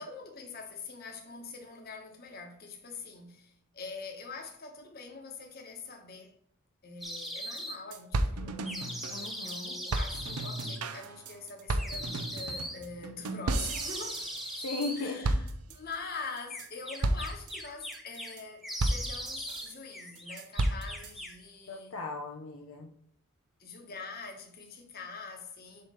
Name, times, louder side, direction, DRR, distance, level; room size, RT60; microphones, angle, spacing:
voice 1, 0.0-6.3 6.8-9.0 9.4-14.3 14.9-22.0 23.6-25.9, left 4 dB, 45° left, 1.2 m, -44 dB
sound 1, 7.0-7.8 8.6-10.8 11.8-12.8 13.7-15.0 16.5-18.3 18.6-19.7 19.9-21.4, equal, ahead, 0.7 m, -40 dB
sound 2, 7.3-7.4 7.6-7.7 7.9-9.6 9.9-14.9 15.2-15.9 16.4-16.7 17.0-17.5 17.9-18.4 18.8-19.7 20.2-21.1, right 2 dB, 85° right, 0.7 m, -33 dB
voice 2, 9.1-9.7 14.6-15.2 21.7-22.9, left 3 dB, 65° left, 0.7 m, -37 dB
7.6 x 3.2 x 5.7 m
head